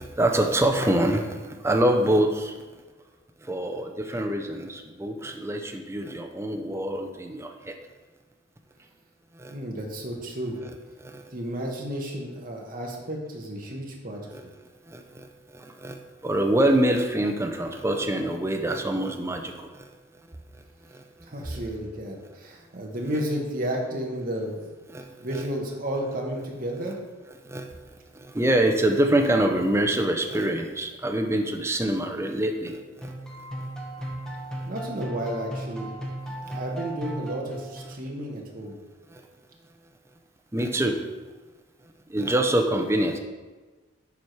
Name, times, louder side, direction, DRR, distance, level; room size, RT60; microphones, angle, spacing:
voice 1, 0.0-2.5 3.4-7.7 9.4-9.5 11.0-11.2 14.3-14.4 14.9-15.3 15.5-19.9 20.9-21.0 24.9-25.4 27.4-27.7 28.1-33.1 36.4-36.6 39.1-39.2 40.5-41.0 42.1-43.2, right 1 dB, 15° right, 4 dB, 0.5 m, -25 dB
voice 2, 9.5-10.6 11.3-14.2 21.2-24.7 25.2-27.0 34.7-35.9 36.5-38.8, right 1 dB, 40° right, 0 dB, 1.1 m, -32 dB
sound 1, 33.0-38.2, right 1 dB, 5° left, 0.9 m, -36 dB
7.2 x 4.7 x 4.6 m, 1.3 s
head